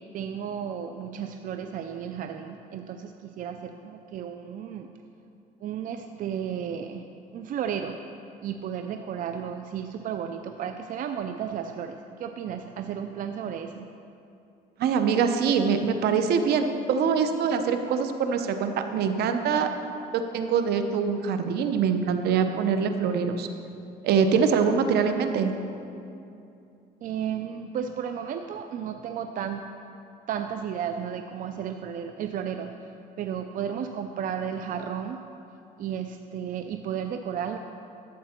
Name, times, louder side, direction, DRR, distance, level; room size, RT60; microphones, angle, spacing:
voice 1, 0.1-4.9 5.6-7.1 7.3-8.0 8.4-13.9 27.0-29.7 30.3-32.7 33.2-35.2 35.8-37.6, right 8 dB, 55° right, 7 dB, 0.5 m, -33 dB
voice 2, 14.8-19.7 20.1-23.5 24.0-25.5, right 6 dB, 75° right, 7 dB, 0.8 m, -24 dB
12.0 x 7.6 x 4.4 m, 2.6 s
cardioid pair, 110°, 17 cm